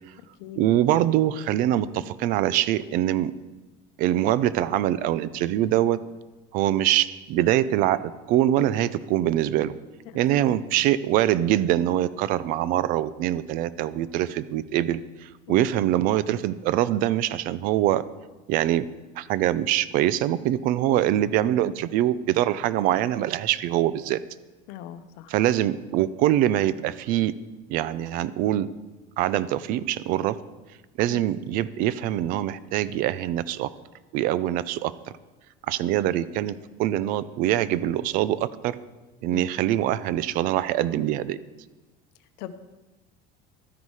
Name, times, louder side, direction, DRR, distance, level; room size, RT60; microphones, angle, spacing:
voice 1, 0.6-3.3 4.0-6.0 6.5-9.7 10.1-18.0 18.5-18.8 19.2-24.2 25.3-27.3 27.7-28.7 29.2-30.4 31.0-33.7 34.1-34.9 35.7-38.8 39.2-41.4, right 13 dB, 50° right, 16 dB, 0.5 m, -24 dB
voice 2, 10.1-10.6 15.5-15.7 24.7-25.3 31.1-31.2 39.3-39.6 42.4-42.5, left 12 dB, 65° left, 11 dB, 0.9 m, -40 dB
12.5 x 9.7 x 4.8 m, 1.1 s
cardioid pair, 175°, 19 cm